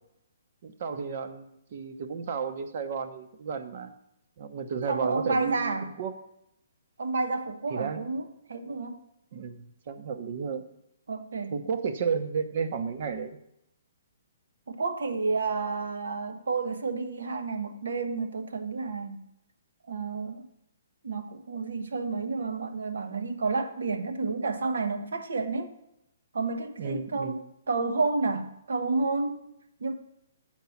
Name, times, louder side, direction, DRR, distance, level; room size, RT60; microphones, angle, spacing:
voice 1, 0.6-3.9 4.4-5.7 6.0-6.2 7.7-8.0 9.3-10.6 11.5-13.4 26.8-27.4, right 6 dB, 50° right, 0.9 m, -32 dB
voice 2, 4.9-5.9 7.0-9.0 11.1-11.6 14.7-19.2 19.9-20.5 21.0-25.7 26.3-29.4 29.8-29.9, right 3 dB, 80° right, 1.1 m, -30 dB
7.9 x 4.6 x 7.2 m
hypercardioid pair, 150°, 0 cm